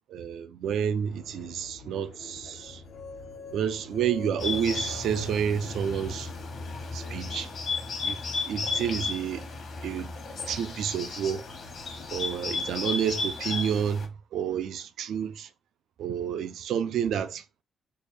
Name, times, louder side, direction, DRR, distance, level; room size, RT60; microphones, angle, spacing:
voice 1, 0.1-2.8 3.5-6.3 6.9-7.5 8.0-8.2 8.5-9.5 9.8-10.1 10.5-11.4 12.1-15.5 16.0-17.4, right 8 dB, 80° right, 0.4 m, -30 dB
sound 1, 1.1-7.7, left 4 dB, 85° left, 0.7 m, -49 dB
sound 2, 2.6-6.7, left 5 dB, 45° left, 0.5 m, -46 dB
Bird, 4.4-14.1, left 4 dB, 65° left, 1.1 m, -34 dB
3.3 x 2.2 x 4.3 m
cardioid pair, 85°, 0 cm